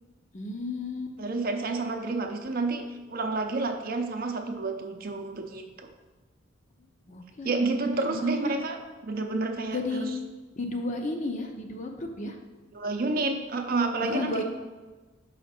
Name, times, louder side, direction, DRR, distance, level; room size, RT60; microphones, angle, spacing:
voice 1, 0.3-1.2 7.1-7.6 8.0-8.5 9.7-10.1 10.6-12.4 14.0-14.4, left 2 dB, 40° left, 3 dB, 0.7 m, -33 dB
voice 2, 1.2-2.8 3.1-5.9 7.4-10.1 12.7-14.4, right 3 dB, 45° right, 5 dB, 0.6 m, -29 dB
6.2 x 4.9 x 4.3 m, 1.3 s
head